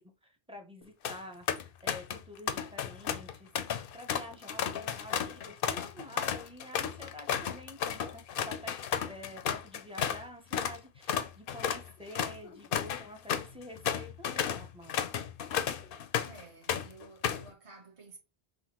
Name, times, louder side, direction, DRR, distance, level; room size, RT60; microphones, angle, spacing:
voice 1, 0.0-1.5 1.8-3.5 3.9-15.1, left 1 dB, 5° right, 0.7 m, -48 dB
sound 1, 0.8-1.2 1.5-2.2 2.5-10.2 10.5-10.8 11.1-16.4 16.7-17.5, left 8 dB, 65° left, 0.7 m, -33 dB
voice 2, 16.2-18.2, right 3 dB, 35° right, 1.1 m, -52 dB
5.7 x 2.4 x 2.9 m
omnidirectional pair, 1.1 m